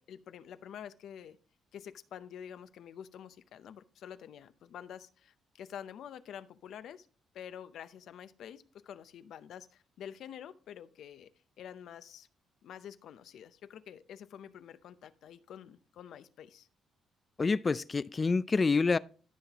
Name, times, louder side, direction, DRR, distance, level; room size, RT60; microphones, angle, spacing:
voice 1, 0.0-1.4 1.7-7.1 7.3-11.3 11.6-12.3 12.6-16.7, left 9 dB, 75° left, 0.6 m, -48 dB
voice 2, 17.4-19.0, left 4 dB, 30° left, 0.3 m, -27 dB
13.5 x 5.7 x 2.9 m
cardioid pair, 90°, 0 cm